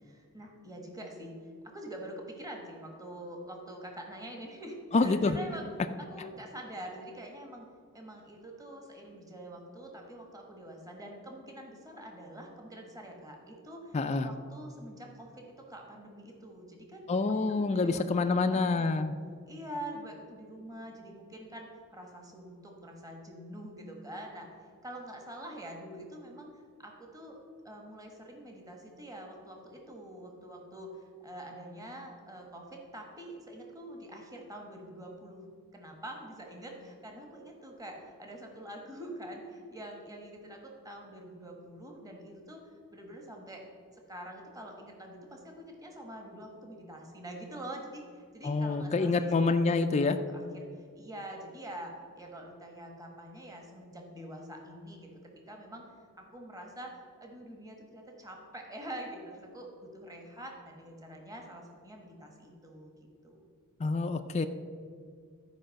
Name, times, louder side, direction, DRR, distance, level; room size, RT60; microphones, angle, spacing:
voice 1, 0.0-1.3 1.6-5.7 6.0-7.7 7.9-17.0 17.5-17.9 18.2-18.9 19.5-24.5 24.8-26.5 26.8-27.4 27.6-35.5 35.7-43.6 43.9-63.5, right 1 dB, 15° right, 1 dB, 1.3 m, -45 dB
voice 2, 4.9-5.4 13.9-14.3 17.1-19.1 48.4-50.2 63.8-64.5, left 3 dB, 30° left, 7 dB, 0.4 m, -27 dB
12.5 x 4.9 x 6.4 m, 2.1 s
head